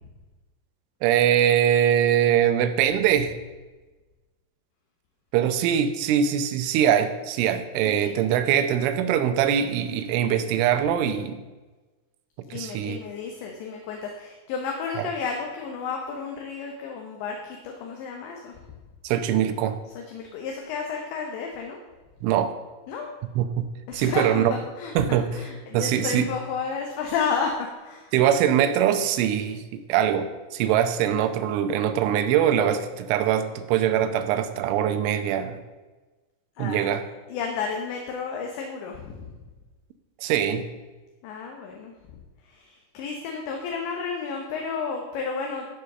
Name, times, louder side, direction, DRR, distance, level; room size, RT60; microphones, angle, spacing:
voice 1, 1.0-3.3 5.3-11.4 12.5-13.0 15.0-15.1 19.0-19.8 22.2-22.5 23.4-23.7 23.9-24.5 25.0-25.3 25.7-26.3 28.1-35.6 36.6-37.0 40.2-40.7, right 9 dB, 80° right, 9 dB, 3.2 m, -22 dB
voice 2, 12.5-18.6 20.0-21.8 22.9-23.1 23.9-24.4 24.8-28.1 36.6-36.9 37.3-39.4 41.2-45.7, left 5 dB, 75° left, 1 dB, 3.1 m, -32 dB
14.0 x 5.2 x 6.7 m, 1.2 s
omnidirectional pair, 5.6 m